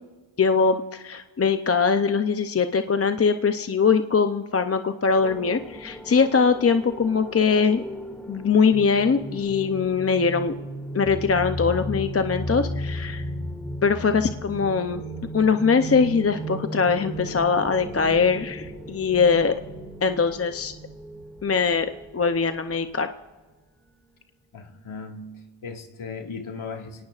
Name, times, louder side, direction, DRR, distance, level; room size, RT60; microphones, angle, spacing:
voice 1, 0.4-7.8 8.3-10.5 10.9-13.3 13.8-15.0 15.3-19.5 20.0-20.7 21.4-21.9 22.1-23.1, left 5 dB, 30° left, 8 dB, 0.6 m, -22 dB
sound 1, 5.2-22.3, equal, 5° left, 2.2 m, -35 dB
voice 2, 24.5-27.1, left 4 dB, 80° left, 2 dB, 2.0 m, -37 dB
26.5 x 18.0 x 2.5 m, 1.3 s
wide cardioid pair, 95°, 48 cm